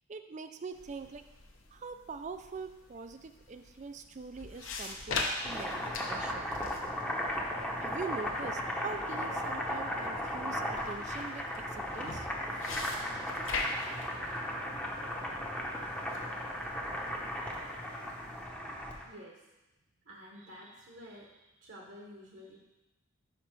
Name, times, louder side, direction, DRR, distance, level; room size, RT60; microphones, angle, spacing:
voice 1, 0.1-1.3 1.7-6.5 7.8-12.3, right 4 dB, 35° right, 9 dB, 0.4 m, -43 dB
sound 1, 0.7-18.4, left 3 dB, 65° left, 0.9 m, -43 dB
Boiling, 5.3-19.1, equal, 5° left, 0.8 m, -36 dB
voice 2, 19.0-19.5 20.0-22.6, equal, 60° right, -2 dB, 1.1 m, -50 dB
5.5 x 5.1 x 6.0 m, 1.0 s
head